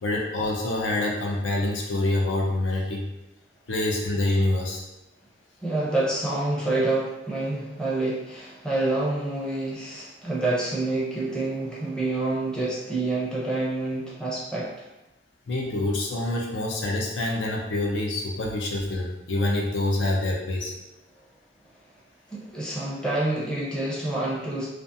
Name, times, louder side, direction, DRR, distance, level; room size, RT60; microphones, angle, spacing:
voice 1, 0.0-3.0 3.7-4.8 15.5-20.7, left 2 dB, 75° left, -1 dB, 0.5 m, -26 dB
voice 2, 5.6-14.9 22.3-24.7, right 2 dB, 5° left, -6 dB, 0.6 m, -27 dB
2.5 x 2.4 x 2.5 m, 0.99 s
head